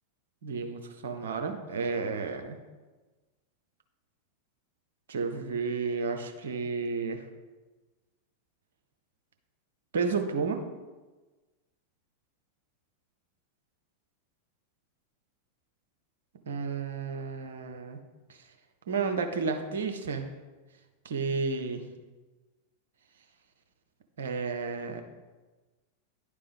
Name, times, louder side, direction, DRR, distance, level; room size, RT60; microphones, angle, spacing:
voice 1, 0.4-2.6 5.1-7.2 9.9-10.6 16.5-18.0 18.9-20.3 21.0-21.8 24.2-25.0, right 4 dB, 65° right, 5 dB, 0.7 m, -31 dB
10.0 x 3.4 x 5.2 m, 1.2 s
figure-of-eight pair, 90°, 0 cm